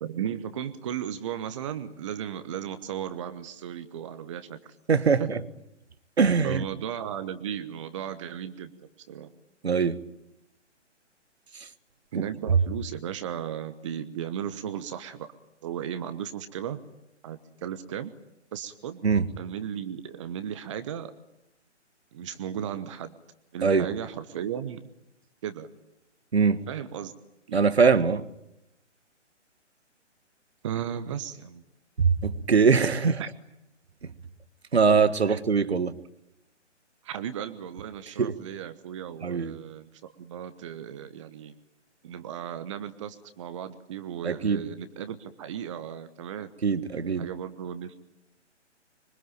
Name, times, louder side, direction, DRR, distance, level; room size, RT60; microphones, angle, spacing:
voice 1, 0.0-4.6 5.2-5.3 6.4-9.3 12.1-15.3 15.6-16.8 17.2-18.1 18.5-19.0 19.4-21.1 22.1-23.1 23.5-24.8 25.4-25.7 26.7-27.1 27.5-27.6 30.6-31.6 33.2-33.3 35.3-35.4 37.0-39.9 40.2-41.5 42.0-46.5 47.2-48.0, right 9 dB, 25° right, 1.1 m, -35 dB
voice 2, 4.9-5.4 6.2-6.6 9.6-10.0 12.1-12.2 19.0-19.2 23.6-23.9 26.3-26.6 27.5-28.2 32.0-33.2 34.7-35.9 38.2-38.3 39.2-39.5 44.2-44.6 46.6-47.2, right 5 dB, 60° right, 1.7 m, -22 dB
25.5 x 24.0 x 8.9 m
figure-of-eight pair, 135°, 36 cm